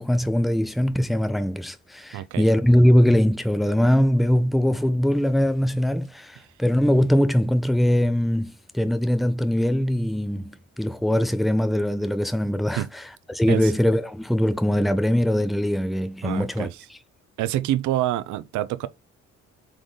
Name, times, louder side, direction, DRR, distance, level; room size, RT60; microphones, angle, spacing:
voice 1, 0.0-16.7, equal, ahead, 0.5 m, -21 dB
voice 2, 2.1-2.5 12.7-12.9 13.5-13.7 16.2-16.8 17.4-18.9, right 14 dB, 75° right, 0.5 m, -26 dB
3.8 x 3.8 x 3.2 m
cardioid pair, 90°, 30 cm